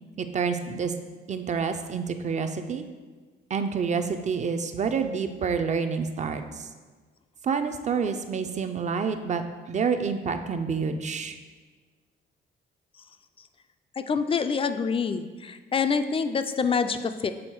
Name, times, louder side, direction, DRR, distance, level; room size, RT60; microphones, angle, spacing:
voice 1, 0.2-0.9 1.3-2.8 3.5-6.7 7.4-11.4, right 5 dB, 35° right, 7 dB, 0.5 m, -28 dB
voice 2, 14.0-17.3, left 5 dB, 30° left, 10 dB, 0.3 m, -26 dB
6.3 x 3.5 x 4.5 m, 1.4 s
cardioid pair, 90°, 20 cm